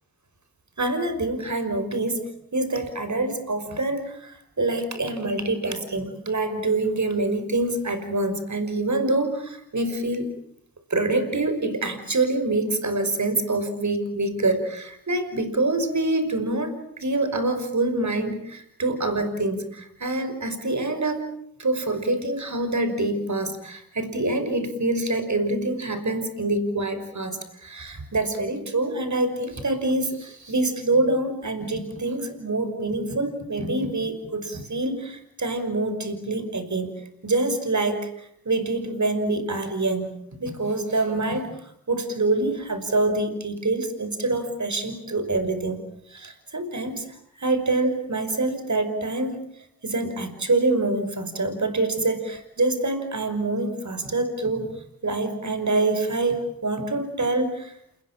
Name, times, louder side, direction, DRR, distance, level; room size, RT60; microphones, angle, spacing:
voice 1, 0.8-10.3 10.9-21.3 21.6-36.9 37.2-45.8 46.1-49.4 49.8-57.8, right 2 dB, 50° right, 8 dB, 5.7 m, -26 dB
29.0 x 21.0 x 8.9 m, 0.71 s
cardioid pair, 50°, 36 cm